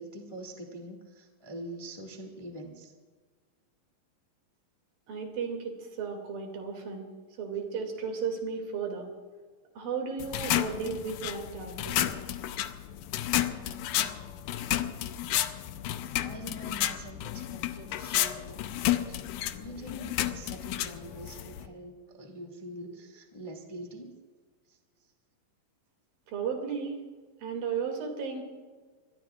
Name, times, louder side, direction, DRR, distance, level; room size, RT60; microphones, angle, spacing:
voice 1, 0.0-2.9 16.2-18.7 19.1-24.1 24.7-25.1, right 1 dB, 15° left, 2 dB, 1.1 m, -44 dB
voice 2, 5.1-7.1 7.4-9.1 9.8-12.2 14.0-14.1 26.3-27.0 27.4-28.4, right 6 dB, 75° right, 3 dB, 4.2 m, -34 dB
sound 1, 10.2-21.7, left 13 dB, 75° left, 1.9 m, -32 dB
25.0 x 21.0 x 2.5 m, 1.5 s
omnidirectional pair, 4.2 m